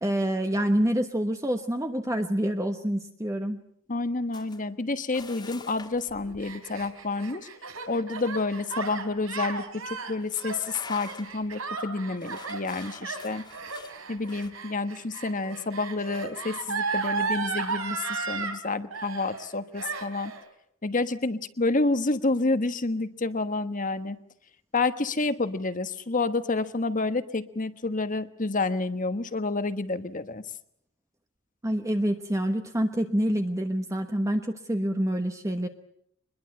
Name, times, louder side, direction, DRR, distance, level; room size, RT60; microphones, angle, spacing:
voice 1, 0.0-3.6 31.6-35.7, equal, 15° right, 5 dB, 1.2 m, -27 dB
voice 2, 3.9-7.5 7.9-13.4 14.1-20.3 20.8-24.2 24.7-30.4, left 3 dB, 40° left, 11 dB, 1.3 m, -29 dB
sound 1, 4.3-4.6 5.1-6.1 8.7-8.8 9.3-9.4 10.2-11.5 12.2-14.5, left 4 dB, 20° left, 2.0 m, -46 dB
Gasp, 6.1-18.6 18.9-19.5 19.8-20.4, right 4 dB, 85° right, 4.1 m, -34 dB
24.0 x 21.5 x 7.8 m, 0.70 s
head